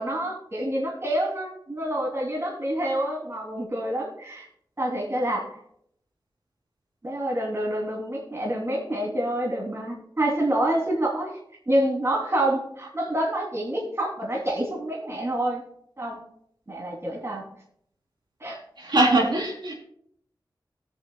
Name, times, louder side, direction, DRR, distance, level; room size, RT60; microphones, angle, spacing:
voice 1, 0.0-4.5 4.8-5.5 7.0-11.4 11.7-15.6 16.0-16.2 16.7-17.5 18.4-18.6, right 1 dB, 35° right, -2 dB, 3.2 m, -27 dB
voice 2, 18.8-19.7, right 2 dB, 75° right, -3 dB, 3.7 m, -21 dB
21.5 x 7.5 x 2.3 m, 0.68 s
wide cardioid pair, 95°, 8 cm